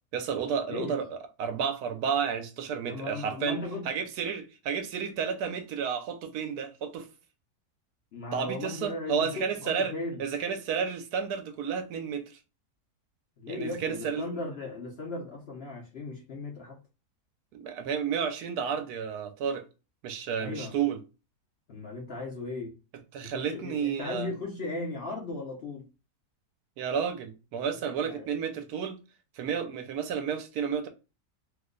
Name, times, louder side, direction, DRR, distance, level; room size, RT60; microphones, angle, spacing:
voice 1, 0.1-3.6 3.8-7.1 8.3-9.9 10.2-12.4 13.5-14.2 17.5-19.6 20.0-21.0 23.1-24.3 26.8-29.0 29.3-30.9, right 7 dB, 75° right, 1.0 m, -31 dB
voice 2, 2.9-3.9 8.1-10.2 13.4-16.8 20.4-20.8 21.7-22.8 23.2-25.9 28.0-28.3, left 2 dB, 55° left, 0.7 m, -37 dB
2.9 x 2.1 x 3.7 m
omnidirectional pair, 1.8 m